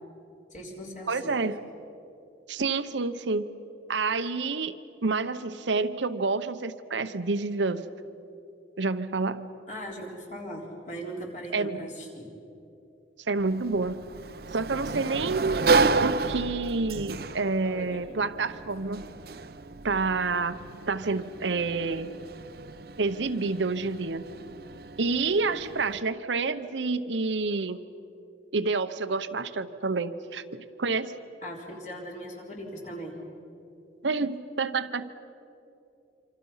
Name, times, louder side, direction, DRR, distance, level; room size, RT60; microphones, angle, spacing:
voice 1, 0.5-1.3 9.7-12.3 17.6-18.0 31.4-33.1, equal, 40° left, -1 dB, 4.0 m, -39 dB
voice 2, 1.1-1.6 2.5-3.4 3.9-4.7 5.0-7.8 8.8-9.5 11.5-11.9 13.3-14.0 14.5-15.6 16.0-19.1 19.8-20.6 20.9-22.1 23.0-24.2 25.0-27.8 28.5-31.2 34.0-35.2, right 3 dB, 80° right, 10 dB, 0.9 m, -28 dB
Sliding door, 13.4-26.0, right 4 dB, 55° right, 0.7 m, -31 dB
26.5 x 26.0 x 5.7 m, 2.8 s
head